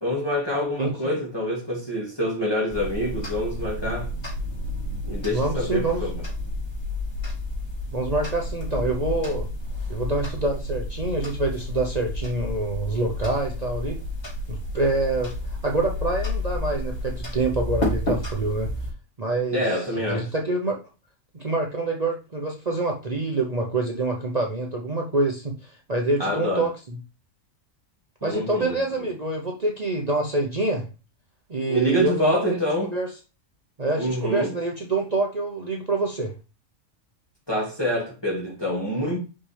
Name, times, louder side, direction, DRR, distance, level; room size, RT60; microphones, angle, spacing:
voice 1, 0.0-4.1 5.1-6.2 19.5-20.3 26.2-26.7 28.2-28.8 31.7-32.9 34.0-34.5 37.5-39.2, equal, 20° left, 2.6 m, -26 dB
voice 2, 0.8-1.2 5.3-6.0 7.9-9.5 9.9-14.0 14.5-18.7 19.2-19.6 20.1-20.8 21.3-25.5 25.9-27.0 28.2-30.8 31.5-32.6 32.9-33.1 33.8-36.3, right 2 dB, 35° right, 0.9 m, -26 dB
sound 1, 2.7-18.9, left 1 dB, 55° left, 3.3 m, -31 dB
5.7 x 5.5 x 3.4 m
omnidirectional pair, 1.4 m